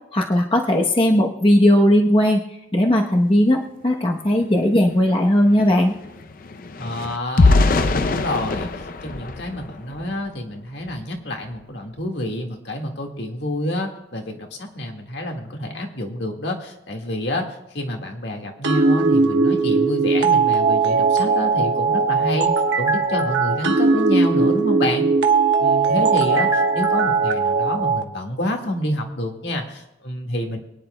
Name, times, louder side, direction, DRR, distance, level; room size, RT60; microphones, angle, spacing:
voice 1, 0.1-2.4 2.7-5.9, left 1 dB, 30° left, 1 dB, 0.9 m, -17 dB
sound 1, 4.4-4.5 4.8-10.3 10.8-11.0 11.4-11.6, left 3 dB, 45° left, 0.5 m, -23 dB
voice 2, 6.8-8.7 9.0-22.5 22.7-25.0 25.6-30.6, left 1 dB, 65° left, 2 dB, 1.8 m, -28 dB
sound 2, 18.6-28.0, right 4 dB, 75° right, 1.2 m, -19 dB
24.0 x 10.0 x 2.2 m, 0.92 s
head